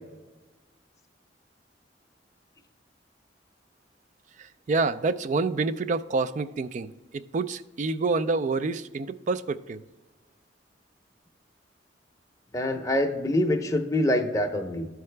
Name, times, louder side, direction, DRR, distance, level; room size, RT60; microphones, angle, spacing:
voice 1, 4.4-9.8, right 3 dB, 40° right, 14 dB, 0.3 m, -28 dB
voice 2, 12.5-14.9, left 1 dB, 20° left, 3 dB, 0.6 m, -25 dB
13.0 x 4.7 x 3.3 m, 1.2 s
head